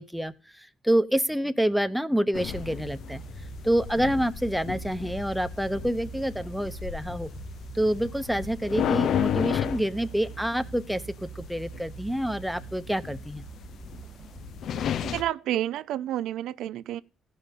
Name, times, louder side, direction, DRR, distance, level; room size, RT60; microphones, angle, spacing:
voice 1, 0.0-3.2 3.6-7.3 7.7-13.4, equal, ahead, 0.8 m, -27 dB
sound 1, 2.3-15.2, left 9 dB, 70° left, 0.6 m, -33 dB
sound 2, 2.5-15.3, right 7 dB, 40° right, 0.5 m, -44 dB
voice 2, 15.0-17.0, right 12 dB, 85° right, 0.5 m, -30 dB
15.5 x 5.7 x 5.3 m
cardioid pair, 90°, 0 cm